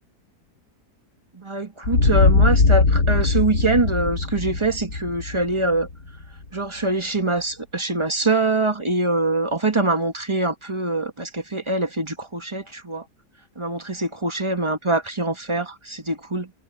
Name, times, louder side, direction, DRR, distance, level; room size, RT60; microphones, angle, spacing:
voice 1, 1.3-5.9 6.5-13.0 13.6-16.5, right 2 dB, 20° right, 1.3 m, -24 dB
sound 1, 1.8-6.4, left 3 dB, 75° left, 2.7 m, -20 dB
omnidirectional pair, 1.7 m